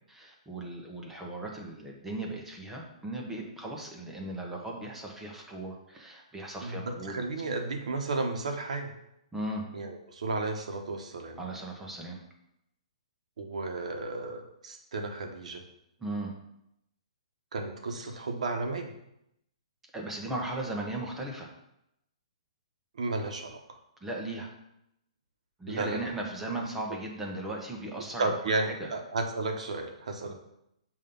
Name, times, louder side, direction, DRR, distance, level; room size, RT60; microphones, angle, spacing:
voice 1, 0.1-7.1 9.3-9.6 11.4-12.2 16.0-16.3 19.9-21.5 24.0-24.5 25.6-28.9, right 2 dB, 5° right, -1 dB, 0.8 m, -37 dB
voice 2, 6.6-8.9 9.7-11.4 13.4-15.6 17.5-18.9 22.9-23.8 25.7-26.1 28.2-30.3, right 3 dB, 75° right, 4 dB, 1.1 m, -33 dB
7.2 x 2.7 x 5.3 m, 0.81 s
hypercardioid pair, 165°, 4 cm